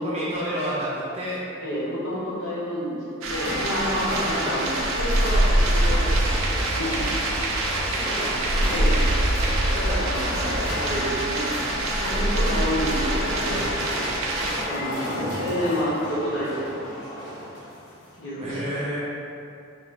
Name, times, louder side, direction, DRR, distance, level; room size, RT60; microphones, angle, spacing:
voice 1, 0.0-1.4 4.0-4.6 7.7-8.8 10.3-10.8 18.4-19.0, equal, 30° right, -9 dB, 0.8 m, -31 dB
voice 2, 1.6-7.0 8.7-9.0 9.7-11.4 11.9-14.2 14.6-16.6 18.2-18.6, equal, 65° left, -9 dB, 1.2 m, -29 dB
sound 1, 3.2-14.6, right 1 dB, 90° right, 0.4 m, -24 dB
sound 2, 3.3-18.1, left 1 dB, 45° left, 1.1 m, -33 dB
3.1 x 2.4 x 3.8 m, 2.6 s
head